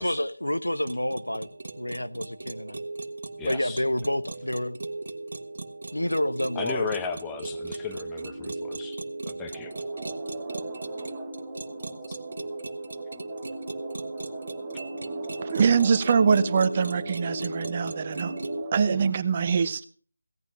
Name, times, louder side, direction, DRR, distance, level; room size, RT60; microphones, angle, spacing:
voice 1, 0.0-1.5 1.8-2.8 3.4-4.8 5.9-6.9, left 1 dB, 85° left, 13 dB, 1.0 m, -28 dB
sound 1, 0.8-18.6, right 2 dB, 55° right, 1.5 m, -37 dB
voice 2, 3.4-3.8 6.5-9.0 9.3-9.7 12.1-12.2, left 5 dB, 10° left, 5 dB, 1.0 m, -35 dB
sound 2, 9.5-19.0, right 4 dB, 10° right, 1.4 m, -41 dB
voice 3, 15.4-18.4 18.7-19.8, right 6 dB, 30° right, 12 dB, 0.9 m, -23 dB
16.5 x 9.2 x 5.4 m, 0.40 s
figure-of-eight pair, 165°, 0 cm